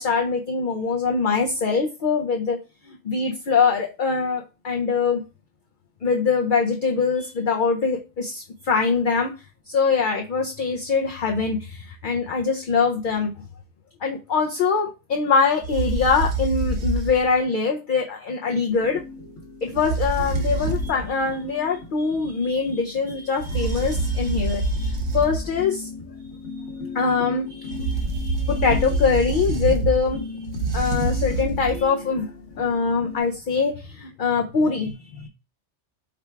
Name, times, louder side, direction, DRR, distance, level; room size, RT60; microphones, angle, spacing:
voice 1, 0.0-2.6 2.9-5.2 6.0-9.3 9.7-13.3 14.0-19.0 19.6-25.9 26.9-30.2 30.7-32.3 32.6-35.3, left 5 dB, 55° left, 1 dB, 0.7 m, -23 dB
sound 1, 15.6-17.3 19.7-21.1 23.4-25.6 27.7-31.9, right 2 dB, 40° right, 0.8 m, -26 dB
sound 2, 18.7-33.2, left 4 dB, 85° left, 1.3 m, -38 dB
5.0 x 2.3 x 4.4 m, 0.29 s
omnidirectional pair, 1.2 m